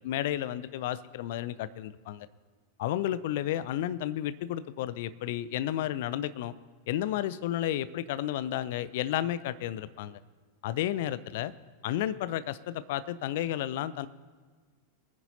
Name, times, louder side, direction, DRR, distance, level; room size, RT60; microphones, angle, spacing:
voice 1, 0.0-2.3 2.8-6.5 6.9-10.2 10.6-11.5 11.8-14.1, left 12 dB, 55° left, 16 dB, 0.5 m, -32 dB
22.5 x 10.0 x 2.8 m, 1.5 s
figure-of-eight pair, 90°, 0 cm